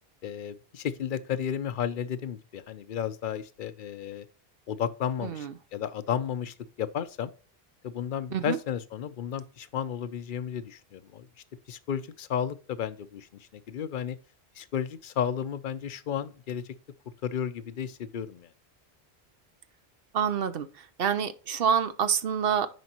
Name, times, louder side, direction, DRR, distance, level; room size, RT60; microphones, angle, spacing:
voice 1, 0.2-4.3 4.7-7.3 7.8-11.3 11.7-14.2 14.6-16.7 17.2-18.5, left 8 dB, 55° left, 0.7 m, -33 dB
voice 2, 5.2-5.5 8.3-8.6 20.1-22.7, right 7 dB, 65° right, 0.8 m, -27 dB
9.4 x 5.2 x 2.9 m
omnidirectional pair, 1.1 m